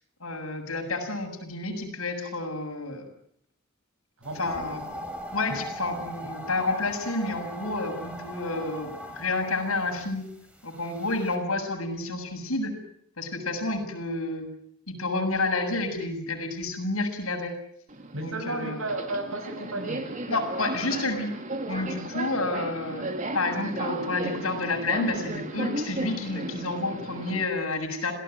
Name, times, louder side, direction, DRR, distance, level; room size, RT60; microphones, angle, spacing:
voice 1, 0.2-3.1 4.4-5.0 5.3-10.2 10.6-12.7 13.2-14.5 14.9-17.5 18.2-18.9 20.3-21.3 21.7-23.1 23.3-28.1, left 2 dB, 85° left, 3 dB, 7.2 m, -30 dB
sound 1, 4.2-11.4, equal, 5° right, 4.0 m, -40 dB
voice 2, 4.2-4.5 5.5-5.6 18.1-20.1, right 2 dB, 75° right, 7 dB, 6.5 m, -33 dB
Subway metro underground, 17.9-27.5, right 2 dB, 35° right, 2.9 m, -35 dB
27.5 x 18.0 x 9.2 m, 0.68 s
head